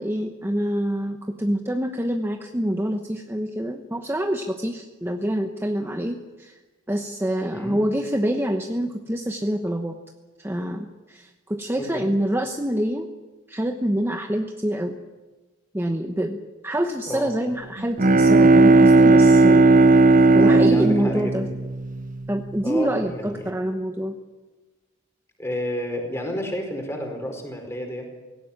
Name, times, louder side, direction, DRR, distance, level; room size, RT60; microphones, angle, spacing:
voice 1, 0.0-6.6 6.9-10.0 10.4-13.1 13.5-15.0 15.7-16.4 16.6-19.7 20.3-21.5 22.3-24.1, equal, 10° right, 4 dB, 1.0 m, -26 dB
voice 2, 11.8-12.1 17.0-17.3 20.3-21.6 22.6-23.5 25.4-28.1, equal, 15° left, 3 dB, 4.9 m, -31 dB
Bowed string instrument, 17.8-22.5, right 3 dB, 40° right, 0.8 m, -15 dB
18.0 x 17.0 x 9.8 m, 1.2 s
head